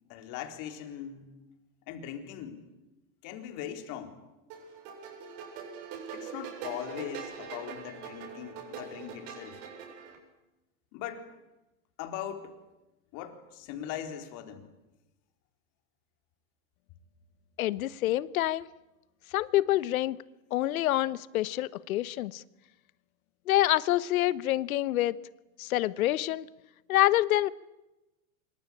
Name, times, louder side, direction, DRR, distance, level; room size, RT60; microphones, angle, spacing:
voice 1, 0.1-1.3 1.9-2.7 3.2-4.2 6.1-9.6 10.9-11.3 12.0-12.5 13.1-14.7, left 10 dB, 45° left, 6 dB, 4.2 m, -40 dB
sound 1, 4.5-10.2, right 6 dB, 45° right, 7.8 m, -43 dB
voice 2, 17.6-18.7 19.3-20.2 20.5-22.4 23.5-25.2 25.6-26.5 26.9-27.5, left 15 dB, 75° left, 18 dB, 1.2 m, -26 dB
26.0 x 24.0 x 8.7 m, 1.0 s
supercardioid pair, 140°, 42 cm